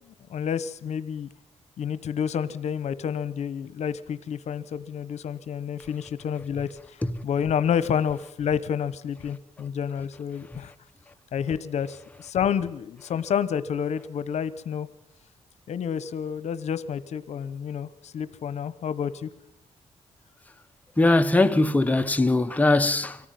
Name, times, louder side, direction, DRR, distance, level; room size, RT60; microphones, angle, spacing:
voice 1, 0.0-1.3 1.8-10.7 11.3-14.9 15.7-19.3, left 8 dB, 80° left, 0.9 m, -29 dB
voice 2, 21.0-23.2, left 2 dB, 15° left, 1.1 m, -20 dB
24.0 x 14.5 x 9.3 m
cardioid pair, 95°, 11 cm